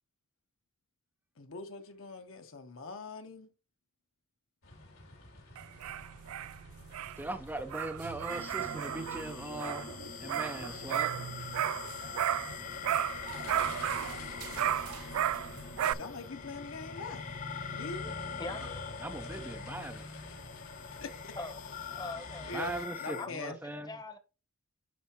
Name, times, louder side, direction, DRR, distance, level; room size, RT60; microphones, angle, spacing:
voice 1, 1.4-3.5 15.9-17.3 17.7-18.1 21.0-21.3 22.5-22.7 23.0-23.6, left 3 dB, 65° left, 1.1 m, -42 dB
sound 1, 4.6-22.8, left 2 dB, 85° left, 3.1 m, -48 dB
sound 2, 5.6-12.6 12.8-15.9, right 10 dB, 75° right, 0.3 m, -34 dB
voice 2, 7.2-9.9 10.2-11.1 18.5-18.7 19.0-20.0 22.5-24.0, right 2 dB, 10° right, 0.4 m, -40 dB
sound 3, 8.3-23.3, left 6 dB, 40° left, 0.5 m, -44 dB
voice 3, 18.4-19.0 21.4-21.6 21.9-22.5 23.2-23.3 23.6-24.2, left 2 dB, 20° left, 0.9 m, -42 dB
10.5 x 4.5 x 3.0 m
head